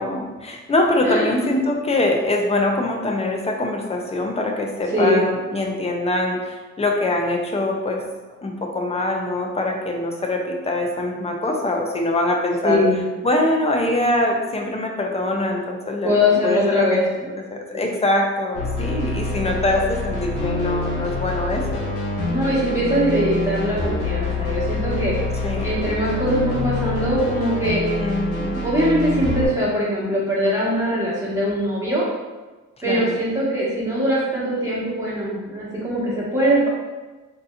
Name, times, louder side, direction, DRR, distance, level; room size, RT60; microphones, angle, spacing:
voice 1, 0.0-8.0 8.4-12.8 13.2-21.9 25.4-25.7 28.0-28.6 32.8-33.2, left 1 dB, 20° left, 2 dB, 0.5 m, -23 dB
voice 2, 12.6-13.0 16.0-17.0 17.7-17.9 22.3-25.1 25.6-27.8 28.6-32.0 32.8-36.7, equal, 10° right, -8 dB, 1.5 m, -21 dB
sound 1, 18.5-29.5, left 2 dB, 80° left, 1.1 m, -26 dB
3.8 x 2.7 x 2.5 m, 1.2 s
cardioid pair, 90°, 30 cm